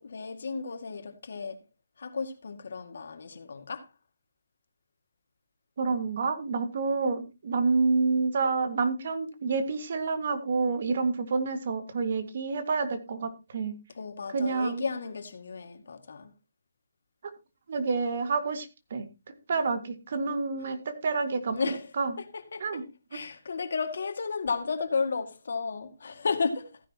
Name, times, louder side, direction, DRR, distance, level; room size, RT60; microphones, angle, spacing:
voice 1, 0.0-1.6 2.0-3.9 13.9-16.3 20.6-20.8 21.5-21.9 22.2-22.6 23.1-26.8, left 4 dB, 65° left, 2.1 m, -33 dB
voice 2, 5.8-13.8 14.3-14.8 17.7-19.1 19.5-22.1 22.6-22.8, right 4 dB, 50° right, 1.9 m, -28 dB
15.5 x 10.5 x 2.9 m
hypercardioid pair, 170°, 0 cm